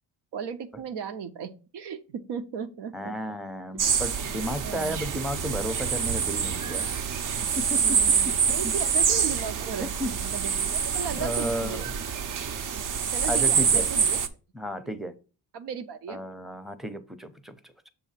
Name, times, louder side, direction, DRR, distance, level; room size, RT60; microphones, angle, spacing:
voice 1, 0.3-3.1 4.6-5.0 7.8-11.9 12.7-14.2 14.8-15.0 15.5-16.2, right 7 dB, 85° right, 0.7 m, -36 dB
voice 2, 2.9-6.9 7.6-8.0 8.2-8.3 8.6-8.7 9.8-10.1 11.1-12.0 13.3-13.9 14.5-15.2 16.1-17.9, equal, ahead, 0.6 m, -33 dB
sound 1, 3.8-14.3, right 6 dB, 50° right, 0.7 m, -26 dB
6.9 x 2.7 x 5.6 m
cardioid pair, 95°, 40 cm